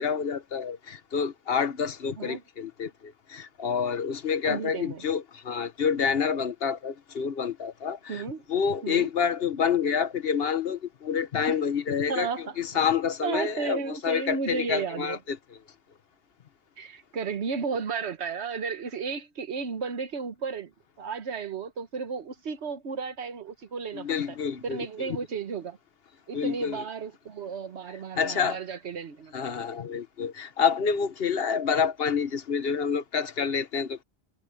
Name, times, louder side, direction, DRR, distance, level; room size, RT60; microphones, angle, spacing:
voice 1, 0.0-8.2 8.5-12.3 12.6-15.4 23.9-25.2 26.3-26.8 28.1-28.6 29.3-34.0, left 6 dB, 65° left, 1.2 m, -28 dB
voice 2, 4.4-5.0 8.1-8.5 8.8-9.1 11.5-11.6 12.1-12.6 13.2-15.2 16.8-20.7 21.0-24.4 24.6-25.8 26.3-29.3 29.6-29.7, right 5 dB, 85° right, 1.4 m, -33 dB
omnidirectional pair, 1.1 m